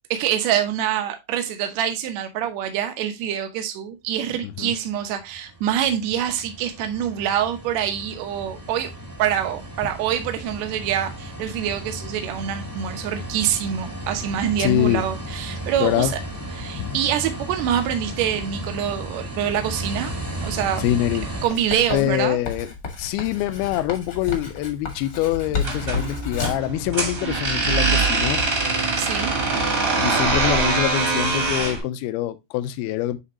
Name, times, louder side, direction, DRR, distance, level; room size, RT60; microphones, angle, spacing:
voice 1, 0.1-8.9 9.2-16.2 16.6-20.1 20.4-20.8 21.4-22.4 29.0-29.3, right 10 dB, 85° right, 1.5 m, -25 dB
voice 2, 4.4-4.7 14.6-15.1 15.8-16.1 16.8-17.0 20.8-21.3 21.9-22.7 23.0-28.4 30.0-33.2, left 13 dB, 80° left, 2.4 m, -24 dB
sound 1, 4.9-21.4, right 1 dB, 35° right, 0.3 m, -34 dB
Writing, 21.5-26.7, left 5 dB, 55° left, 1.0 m, -31 dB
sound 2, 25.6-31.8, right 3 dB, 55° right, 0.9 m, -23 dB
9.7 x 3.5 x 2.9 m
omnidirectional pair, 4.6 m